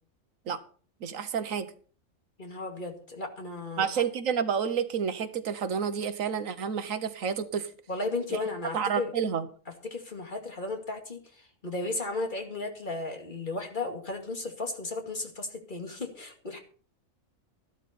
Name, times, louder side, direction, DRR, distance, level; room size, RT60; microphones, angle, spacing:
voice 1, 1.0-1.7 3.8-7.7 8.3-8.4 8.7-9.5, right 7 dB, 90° right, 1.5 m, -29 dB
voice 2, 2.4-3.9 7.9-9.1 9.8-11.2 11.6-16.6, left 2 dB, 40° left, 2.4 m, -34 dB
14.0 x 12.0 x 4.3 m
omnidirectional pair, 1.3 m